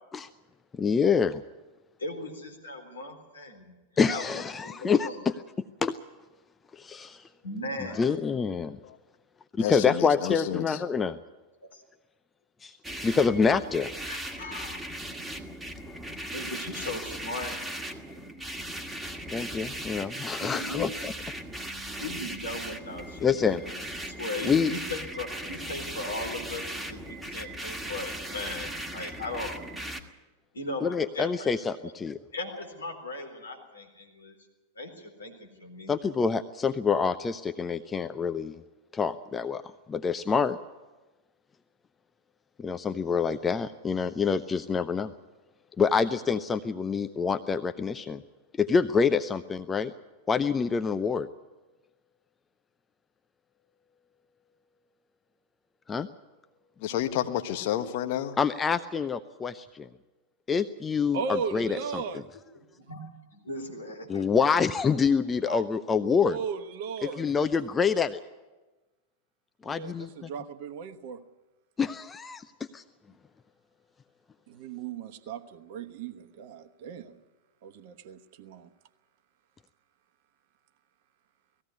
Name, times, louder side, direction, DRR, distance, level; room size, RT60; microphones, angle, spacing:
voice 1, 0.7-1.4 4.0-5.3 5.8-5.9 6.7-7.3 7.8-8.8 9.6-11.2 12.6-13.9 16.2-16.3 19.3-21.1 23.2-23.6 24.4-24.7 30.8-32.2 35.9-38.6 38.9-39.6 39.9-40.6 42.6-45.1 45.8-48.2 48.6-49.9 50.3-51.3 55.9-56.1 58.4-59.9 60.5-62.0 64.1-66.4 67.2-68.2 69.6-70.3 71.8-72.8, left 5 dB, 15° left, 0.6 m, -26 dB
voice 2, 2.0-5.2 7.4-8.2 11.7-11.8 14.1-14.8 16.3-17.6 20.4-20.9 22.0-23.7 24.1-29.5 30.5-31.5 31.8-31.9 32.3-34.3 34.8-35.9 62.8-63.0 63.3-64.3 65.5-65.6, left 2 dB, 70° left, 4.0 m, -38 dB
voice 3, 9.6-10.8 56.8-58.4, left 11 dB, 50° left, 1.4 m, -30 dB
sound 1, 12.8-30.0, right 1 dB, 5° right, 1.9 m, -38 dB
voice 4, 61.1-62.2 66.2-67.3 69.6-71.2 74.5-77.2 77.6-78.7, right 5 dB, 50° right, 1.1 m, -36 dB
19.0 x 15.0 x 9.5 m
figure-of-eight pair, 90°, 0 cm